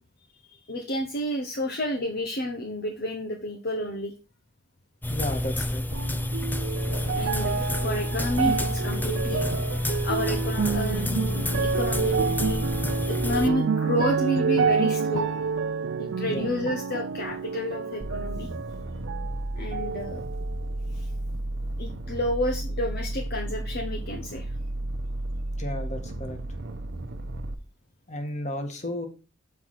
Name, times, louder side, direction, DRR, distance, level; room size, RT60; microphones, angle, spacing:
voice 1, 0.7-4.1 7.1-9.5 10.0-12.7 13.1-15.3 16.0-18.5 19.5-20.2 20.9-21.1 21.8-24.5, left 1 dB, 55° left, 3 dB, 1.0 m, -30 dB
sound 1, 5.0-13.5, left 1 dB, 10° left, 0.5 m, -28 dB
voice 2, 5.1-5.8 16.2-16.5 25.5-26.4 28.1-29.1, left 1 dB, 35° left, 4 dB, 1.7 m, -33 dB
sound 2, 5.9-19.4 19.7-20.7 21.3-21.4, right 5 dB, 75° right, 0.4 m, -29 dB
sound 3, 18.0-27.5, right 1 dB, 60° right, 0.9 m, -33 dB
7.3 x 4.8 x 5.8 m, 0.32 s
head